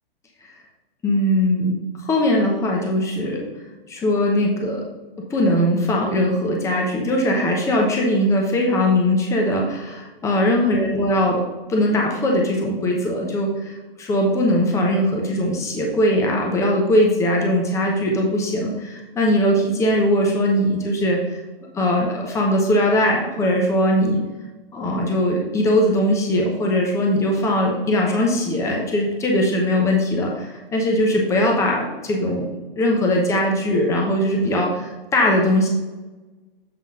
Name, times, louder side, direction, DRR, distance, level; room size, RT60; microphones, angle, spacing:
voice 1, 1.0-1.7 2.0-3.5 3.9-4.8 5.3-11.4 11.7-21.4 21.7-24.2 24.7-35.7, left 1 dB, 10° left, 0 dB, 1.0 m, -20 dB
7.7 x 3.7 x 4.8 m, 1.2 s
hypercardioid pair, 135°, 29 cm